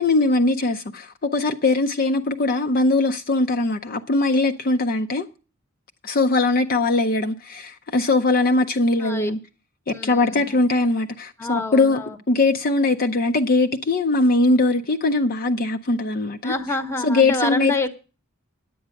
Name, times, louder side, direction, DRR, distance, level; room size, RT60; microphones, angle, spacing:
voice 1, 0.0-5.3 6.0-9.4 9.9-12.0 12.3-16.5 17.0-17.7, left 2 dB, 45° left, 0.6 m, -21 dB
voice 2, 9.0-9.3 9.9-10.5 11.4-12.2 16.4-17.9, left 2 dB, 10° left, 1.0 m, -27 dB
10.0 x 8.6 x 6.4 m
head